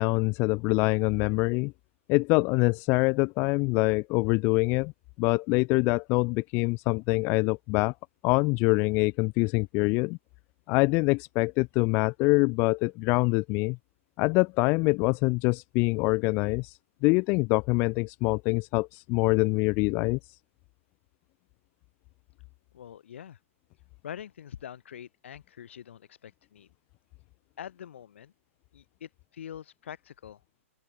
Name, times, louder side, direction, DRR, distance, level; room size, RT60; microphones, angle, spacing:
voice 1, 0.0-1.7 2.1-4.9 5.2-7.9 8.2-10.2 10.7-13.8 14.2-20.2, left 27 dB, 25° left, 0.3 m, -25 dB
voice 2, 22.7-23.4 24.0-26.7 27.6-28.3 28.7-30.4, left 9 dB, 55° left, 5.3 m, -44 dB
open air
figure-of-eight pair, 120°, 8 cm